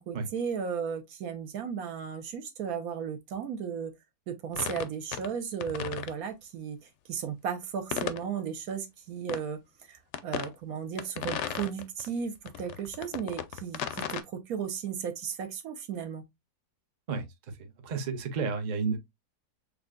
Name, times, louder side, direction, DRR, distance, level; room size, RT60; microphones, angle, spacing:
voice 1, 0.0-3.9 4.3-16.2, right 7 dB, 75° right, 1.3 m, -35 dB
sound 1, 4.5-5.3 5.6-6.1 7.9-8.2 9.3-9.4 10.1-10.5 11.0-12.1 12.5-14.2, left 9 dB, 65° left, 0.7 m, -35 dB
voice 2, 17.8-19.0, right 5 dB, 45° right, 0.6 m, -31 dB
6.4 x 2.3 x 2.4 m
omnidirectional pair, 1.6 m